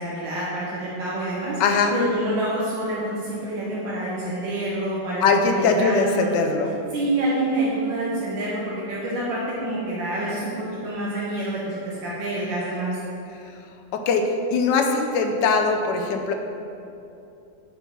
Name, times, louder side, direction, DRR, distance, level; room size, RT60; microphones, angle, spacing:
voice 1, 0.0-1.6 1.9-6.3 6.9-12.9, right 1 dB, 85° right, -6 dB, 1.6 m, -27 dB
voice 2, 1.6-1.9 5.2-6.7 13.9-16.3, left 4 dB, 75° left, 5 dB, 1.2 m, -21 dB
6.6 x 4.4 x 4.4 m, 2.8 s
omnidirectional pair, 2.0 m